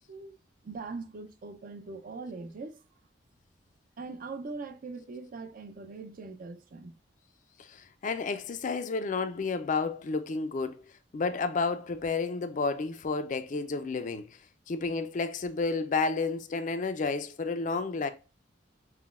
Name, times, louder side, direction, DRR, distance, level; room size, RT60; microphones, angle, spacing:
voice 1, 0.6-2.8 4.0-7.0, right 3 dB, 50° right, 0.4 m, -41 dB
voice 2, 7.6-14.3 14.7-18.1, left 4 dB, 45° left, 0.4 m, -31 dB
5.7 x 2.2 x 2.3 m
head